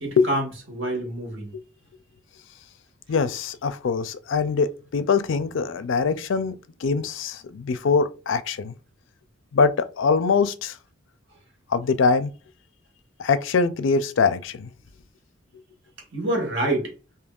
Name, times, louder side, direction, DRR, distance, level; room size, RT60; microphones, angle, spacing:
voice 1, 0.0-1.5 16.1-16.9, right 1 dB, 70° right, 1.6 m, -27 dB
voice 2, 3.1-6.6 6.8-8.7 9.5-9.7 10.0-10.7 11.7-12.3 13.2-14.7, left 5 dB, 75° left, 0.4 m, -23 dB
5.2 x 2.8 x 2.4 m
head